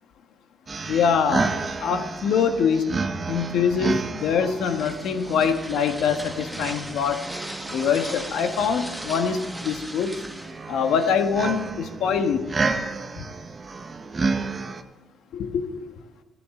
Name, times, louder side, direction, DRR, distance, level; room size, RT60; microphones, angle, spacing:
sound 1, 0.7-14.8, right 4 dB, 35° right, 1.3 m, -31 dB
voice 1, 0.9-1.5 1.8-2.9 3.3-7.2 7.7-10.1 10.7-12.4 13.2-13.3 15.3-15.9, left 6 dB, 80° left, 6 dB, 1.6 m, -24 dB
sound 2, 4.2-11.7, right 1 dB, 5° right, 1.7 m, -39 dB
26.0 x 10.0 x 3.9 m, 1.2 s
cardioid pair, 90°, 0 cm